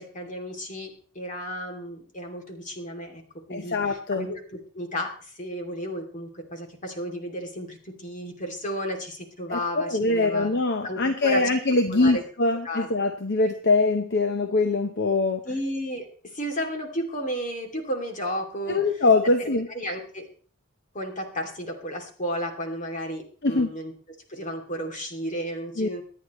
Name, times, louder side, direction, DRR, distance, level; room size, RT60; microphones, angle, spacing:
voice 1, 0.0-3.2 3.5-10.5 10.8-11.5 11.9-12.2 12.6-12.9 15.4-18.8 19.4-20.3 20.9-23.9 24.3-26.0, equal, 35° left, 3 dB, 2.7 m, -33 dB
voice 2, 3.5-4.3 9.5-15.4 18.7-19.7 23.4-23.7 25.8-25.9, left 3 dB, 50° left, 6 dB, 1.0 m, -23 dB
24.0 x 9.6 x 3.1 m, 0.43 s
head